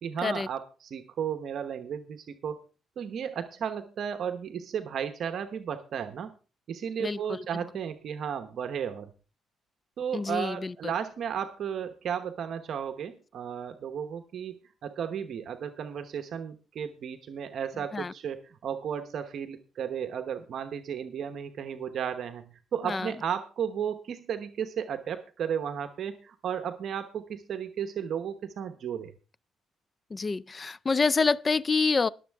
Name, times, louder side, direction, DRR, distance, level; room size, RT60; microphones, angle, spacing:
voice 1, 0.0-2.6 3.0-6.3 6.7-9.1 10.0-29.1, right 8 dB, 65° right, 1.0 m, -34 dB
voice 2, 7.0-7.4 10.1-10.9 17.9-18.1 22.8-23.1 30.1-32.1, left 4 dB, 30° left, 0.5 m, -27 dB
21.5 x 7.3 x 3.5 m
cardioid pair, 90°, 0 cm